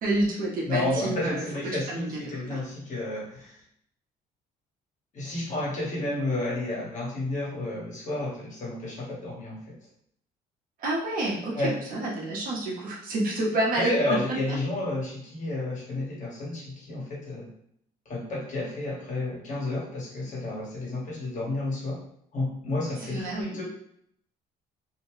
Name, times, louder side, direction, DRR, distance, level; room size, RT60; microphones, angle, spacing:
voice 1, 0.0-2.6 10.8-14.2 23.0-23.6, right 2 dB, 55° right, -3 dB, 1.0 m, -29 dB
voice 2, 0.6-3.6 5.1-9.6 11.5-11.7 13.7-17.5 18.0-22.0 22.3-23.6, left 2 dB, 45° left, -5 dB, 1.3 m, -31 dB
2.8 x 2.2 x 3.1 m, 0.70 s
cardioid pair, 110°, 17 cm